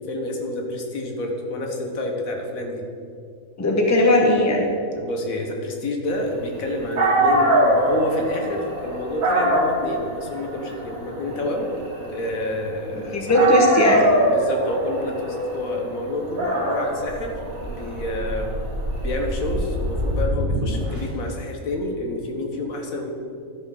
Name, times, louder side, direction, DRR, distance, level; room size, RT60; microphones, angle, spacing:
voice 1, 0.0-2.8 5.0-11.7 12.1-13.6 14.3-17.3 17.7-18.5 19.0-23.1, left 1 dB, 70° left, 2 dB, 1.5 m, -29 dB
voice 2, 3.6-4.7 13.1-14.0, left 1 dB, 15° left, 0 dB, 1.0 m, -18 dB
Dog, 6.7-6.8 7.0-13.0 13.3-20.1, right 1 dB, 70° right, 1.9 m, -23 dB
sound 1, 17.0-21.3, equal, 35° right, 1.8 m, -27 dB
12.0 x 4.4 x 5.7 m, 2.3 s
omnidirectional pair, 1.5 m